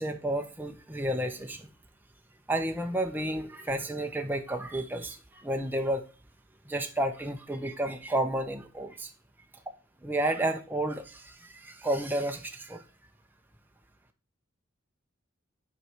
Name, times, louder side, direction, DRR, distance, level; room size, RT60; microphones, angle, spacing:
voice 1, 0.0-1.7 2.5-6.0 6.7-9.1 10.0-12.8, right 1 dB, 10° right, 4 dB, 0.6 m, -31 dB
5.5 x 4.5 x 4.9 m, 0.33 s
head